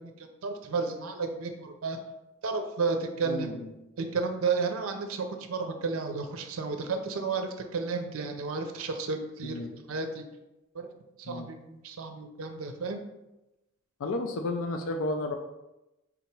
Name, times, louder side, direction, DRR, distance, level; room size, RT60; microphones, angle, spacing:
voice 1, 0.0-2.0 2.4-3.5 4.0-10.2 10.7-10.9 11.2-13.0, right 4 dB, 75° right, 6 dB, 0.5 m, -32 dB
voice 2, 3.2-3.7 9.4-9.7 11.3-11.5 14.0-15.3, left 2 dB, 70° left, 5 dB, 0.4 m, -32 dB
3.6 x 2.9 x 4.5 m, 0.96 s
head